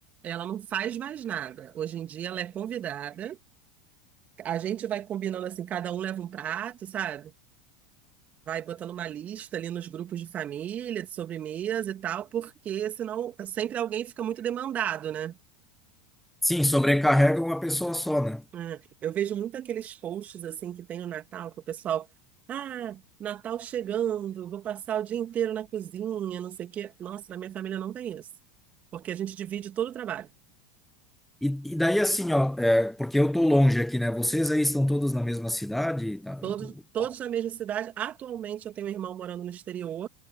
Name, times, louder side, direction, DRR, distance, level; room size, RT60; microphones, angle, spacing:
voice 1, 0.2-3.4 4.4-7.3 8.5-15.3 18.5-22.1 22.5-28.3 28.9-30.3 36.4-40.1, right 10 dB, 35° right, 3.0 m, -33 dB
voice 2, 16.4-18.4 31.4-36.5, left 1 dB, 5° left, 1.4 m, -24 dB
figure-of-eight pair, 80°, 5 cm